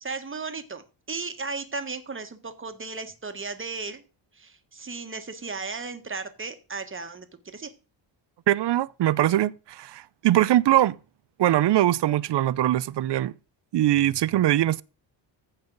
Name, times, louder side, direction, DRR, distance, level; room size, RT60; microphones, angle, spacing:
voice 1, 0.0-4.0 4.3-7.3 7.5-7.7, right 4 dB, 25° right, 1.5 m, -35 dB
voice 2, 8.5-11.0 11.4-13.3 13.7-14.8, right 13 dB, 60° right, 0.6 m, -22 dB
15.0 x 5.6 x 3.9 m
cardioid pair, 115°, 48 cm